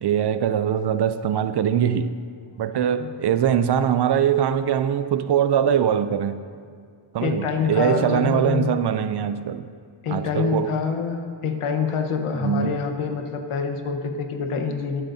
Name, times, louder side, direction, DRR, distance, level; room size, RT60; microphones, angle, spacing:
voice 1, 0.0-2.2 2.6-6.4 7.1-9.7 10.1-10.7 12.4-12.8, right 9 dB, 55° right, 0.5 m, -22 dB
voice 2, 7.2-8.7 10.0-15.0, left 5 dB, 80° left, 1.3 m, -26 dB
21.5 x 7.9 x 2.8 m
wide cardioid pair, 110°, 50 cm